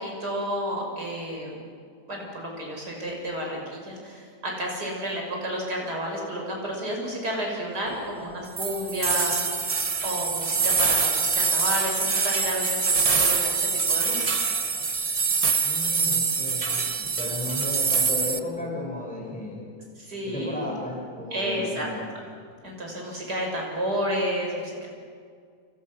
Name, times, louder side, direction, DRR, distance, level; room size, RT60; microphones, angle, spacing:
voice 1, 0.0-1.6 2.1-9.4 10.0-14.2 20.0-20.7 21.3-21.9 22.6-24.9, equal, 65° right, -1 dB, 6.6 m, -31 dB
sound 1, 8.6-18.4, right 4 dB, 30° right, 0.7 m, -24 dB
voice 2, 15.6-19.7 20.2-22.0, left 1 dB, 5° left, -1 dB, 6.6 m, -34 dB
29.5 x 28.0 x 6.4 m, 2.2 s
omnidirectional pair, 1.9 m